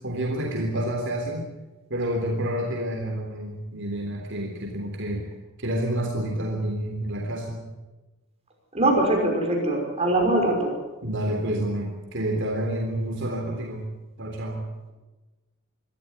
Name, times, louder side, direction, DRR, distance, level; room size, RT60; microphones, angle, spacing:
voice 1, 0.0-1.5 1.9-5.3 5.6-7.7 11.0-13.9 14.2-14.7, right 1 dB, 55° right, 0 dB, 3.6 m, -29 dB
voice 2, 8.7-10.7, right 1 dB, 30° right, 1 dB, 5.7 m, -22 dB
25.0 x 14.5 x 9.8 m, 1.1 s
head